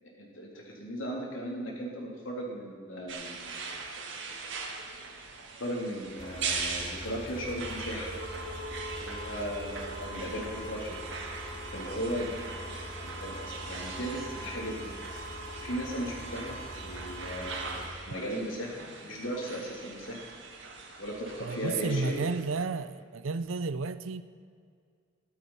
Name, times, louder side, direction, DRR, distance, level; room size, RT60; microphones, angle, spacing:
voice 1, 0.0-3.6 5.6-8.1 8.7-11.0 11.7-12.4 12.9-14.9 15.6-20.3 21.0-22.2, equal, 80° left, 3.4 m, -37 dB
sound 1, 3.1-22.6, right 4 dB, 65° right, 1.9 m, -40 dB
sound 2, 6.2-17.9, left 1 dB, 30° left, 2.0 m, -44 dB
voice 2, 21.4-24.2, right 4 dB, 85° right, 0.6 m, -32 dB
14.0 x 12.0 x 5.6 m
head